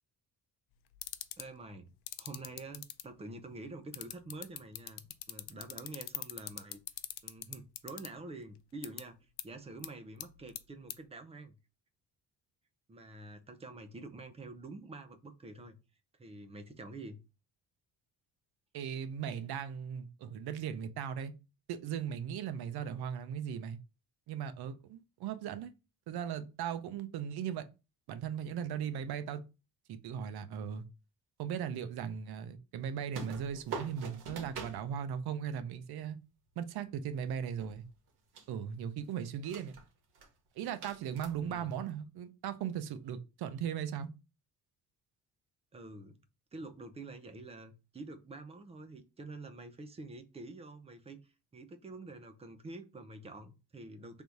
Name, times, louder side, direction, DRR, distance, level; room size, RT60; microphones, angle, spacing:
sound 1, 1.0-1.4 2.1-3.0 3.9-8.1 8.8-9.0 9.4-9.5 9.8-9.9 10.2-10.6 10.9-11.0, left 15 dB, 80° left, 0.5 m, -39 dB
voice 1, 1.4-1.9 2.2-6.8 7.2-9.2 9.4-11.5 12.9-15.8 16.2-17.2 41.4-41.7 45.7-46.2 46.5-54.2, right 2 dB, 15° right, 0.4 m, -47 dB
voice 2, 18.7-21.3 21.7-23.8 24.3-25.7 26.1-27.7 28.1-29.4 29.9-30.8 31.4-36.2 36.6-37.8 38.5-39.7 40.6-44.1, right 8 dB, 75° right, 0.6 m, -38 dB
sound 2, 33.1-34.8 37.2-38.1 38.3-38.6 39.3-39.8 40.1-40.3 40.7-41.7, right 4 dB, 90° right, 1.4 m, -44 dB
3.5 x 2.6 x 4.5 m
cardioid pair, 170°, 38 cm